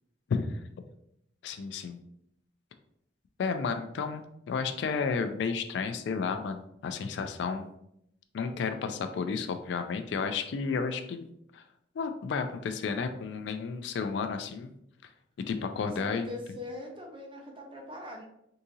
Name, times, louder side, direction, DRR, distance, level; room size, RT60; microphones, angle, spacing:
voice 1, 0.3-0.9 1.4-2.0 3.4-7.7 8.3-11.3 11.5-11.6 12.0-14.7 15.5-16.3, left 5 dB, 65° left, 8 dB, 0.3 m, -32 dB
voice 2, 15.9-18.2, left 2 dB, 30° right, 1 dB, 0.6 m, -41 dB
3.6 x 2.7 x 2.7 m, 0.75 s
head